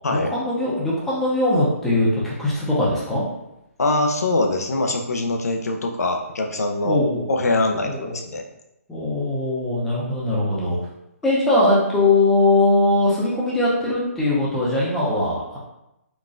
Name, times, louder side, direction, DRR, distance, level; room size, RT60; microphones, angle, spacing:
voice 1, 0.1-3.2 6.8-7.3 7.8-8.1 8.9-10.8 11.2-15.6, left 2 dB, 5° left, -7 dB, 0.6 m, -21 dB
voice 2, 3.8-7.0 7.3-8.4, left 2 dB, 90° left, 3 dB, 0.6 m, -23 dB
3.9 x 2.3 x 2.5 m, 0.89 s
hypercardioid pair, 160°, 8 cm